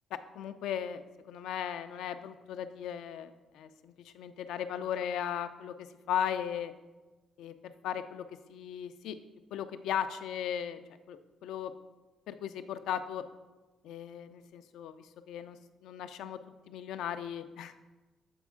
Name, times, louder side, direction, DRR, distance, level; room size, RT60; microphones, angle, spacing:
voice 1, 0.1-1.0 1.3-6.7 7.4-9.2 9.5-10.8 11.1-11.7 12.3-13.2 13.8-16.4 16.7-17.7, left 9 dB, 85° left, 10 dB, 0.3 m, -37 dB
7.1 x 4.2 x 3.6 m, 1.2 s
cardioid pair, 90°, 0 cm